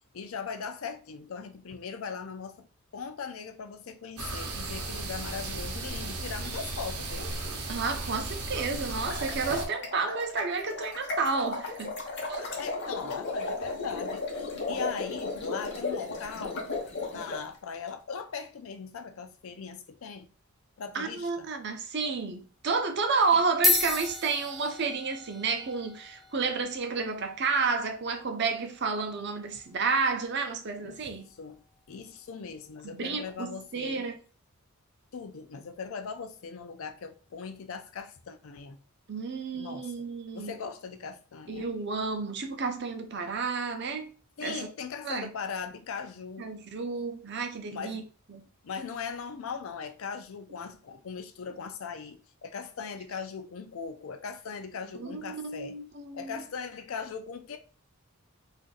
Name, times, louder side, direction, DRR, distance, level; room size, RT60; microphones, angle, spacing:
voice 1, 0.1-2.7 2.9-7.3 12.4-16.7 17.1-20.3 20.8-21.5 30.8-31.0 31.4-31.6 31.9-34.1 35.1-38.8 39.5-39.9 40.3-41.8 44.4-46.5 47.7-48.0 48.6-55.8 56.1-57.6, left 6 dB, 65° left, 0.4 m, -39 dB
sound 1, 4.2-9.7, right 2 dB, 90° right, 0.8 m, -35 dB
voice 2, 7.7-12.0 12.3-12.5 20.9-31.3 32.8-34.2 39.1-40.6 41.5-44.1 44.4-44.7 45.0-45.3 46.4-48.0 48.3-48.4 55.0-56.4, right 4 dB, 50° right, 0.6 m, -31 dB
sound 2, 9.1-17.4, left 3 dB, 50° left, 0.8 m, -35 dB
sound 3, 22.0-22.3 23.1-23.2 23.5-32.2, left 2 dB, ahead, 0.3 m, -35 dB
2.5 x 2.5 x 3.8 m
head